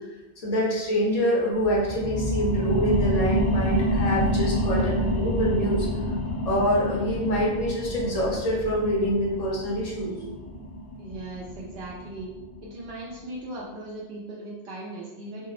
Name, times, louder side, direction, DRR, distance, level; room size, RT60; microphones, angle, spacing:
voice 1, 0.4-5.9 6.5-10.1, equal, 45° left, -4 dB, 0.6 m, -25 dB
sound 1, 1.5-12.7 13.1-13.2, equal, 25° right, 0.7 m, -28 dB
voice 2, 11.0-12.3 12.6-15.5, right 2 dB, 70° right, -5 dB, 0.8 m, -38 dB
2.7 x 2.0 x 2.4 m, 1.0 s
omnidirectional pair, 1.1 m